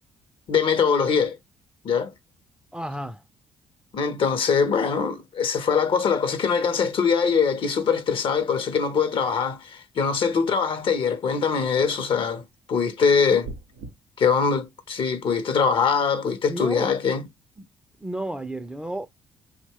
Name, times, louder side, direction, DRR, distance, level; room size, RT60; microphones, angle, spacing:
voice 1, 0.5-1.4 1.8-2.1 3.9-12.4 12.7-13.5 14.2-17.2, left 6 dB, 50° left, 0.6 m, -22 dB
voice 2, 2.7-3.2 16.5-17.0 17.6-17.7 18.0-19.1, right 1 dB, 10° right, 0.4 m, -32 dB
sound 1, 13.4-13.9, right 3 dB, 85° right, 0.5 m, -37 dB
2.9 x 2.1 x 2.8 m
hypercardioid pair, 45°, 11 cm